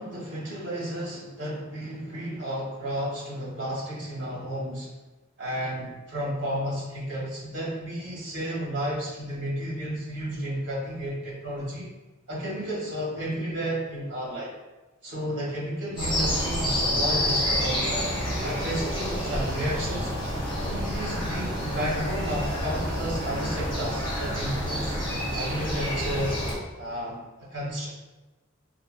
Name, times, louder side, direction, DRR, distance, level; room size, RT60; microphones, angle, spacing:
voice 1, 0.0-4.9 5.4-11.9 12.3-14.5 15.0-18.1 18.4-20.1 20.5-25.0 25.3-26.3 26.8-27.2 27.5-27.9, equal, 60° right, -6 dB, 1.4 m, -32 dB
sound 1, 16.0-26.5, equal, 25° left, 1.2 m, -28 dB
3.6 x 3.1 x 2.6 m, 1.2 s
head